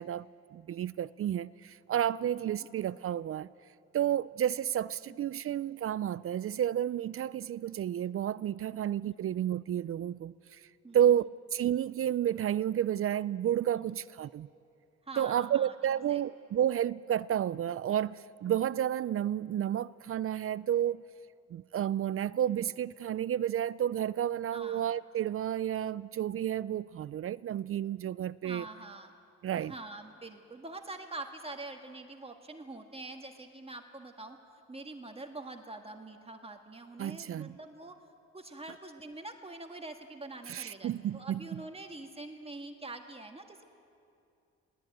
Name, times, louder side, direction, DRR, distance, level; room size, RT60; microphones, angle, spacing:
voice 1, 0.0-3.5 3.9-10.6 10.9-14.5 15.2-21.0 21.5-28.7 29.4-29.7 37.0-37.5 40.5-41.4, right 10 dB, 50° right, 0.4 m, -31 dB
voice 2, 15.0-15.7 16.1-16.2 24.5-24.9 28.4-29.1 29.6-34.4 34.7-38.0 38.3-43.6, right 2 dB, 20° right, 1.7 m, -45 dB
19.5 x 19.0 x 9.2 m
cardioid pair, 75°, 29 cm